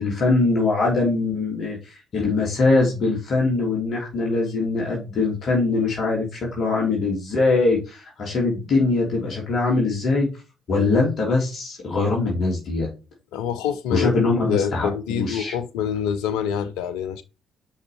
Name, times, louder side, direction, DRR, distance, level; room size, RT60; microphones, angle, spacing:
voice 1, 0.0-10.3 10.7-12.9 13.9-15.5, left 3 dB, 55° left, 3.1 m, -22 dB
voice 2, 13.3-14.1 14.5-17.2, left 8 dB, 75° left, 0.8 m, -26 dB
5.8 x 5.5 x 4.5 m
hypercardioid pair, 50°, 0 cm